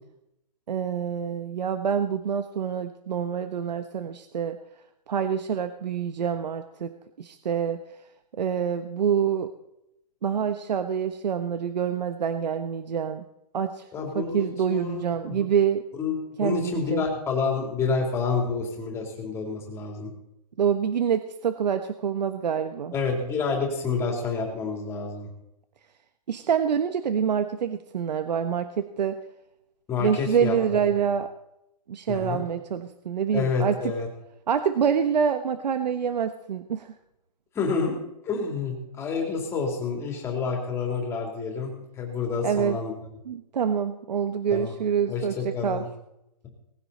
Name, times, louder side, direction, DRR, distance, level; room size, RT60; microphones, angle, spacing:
voice 1, 0.7-4.6 5.1-6.9 7.2-7.8 8.4-9.5 10.2-13.2 13.5-13.9 14.1-15.8 16.4-17.0 20.6-22.9 26.3-29.2 30.0-31.3 31.9-33.7 34.5-36.9 42.4-42.8 43.3-45.3 45.6-45.8, right 7 dB, 80° right, 9 dB, 1.2 m, -26 dB
voice 2, 13.9-15.5 16.0-20.1 22.9-25.3 29.9-30.8 32.1-32.4 33.3-34.1 37.5-38.0 38.2-42.9 44.5-44.7 45.1-45.9, left 5 dB, 10° left, 1 dB, 3.4 m, -28 dB
19.5 x 15.5 x 4.2 m, 0.84 s
hypercardioid pair, 165°, 21 cm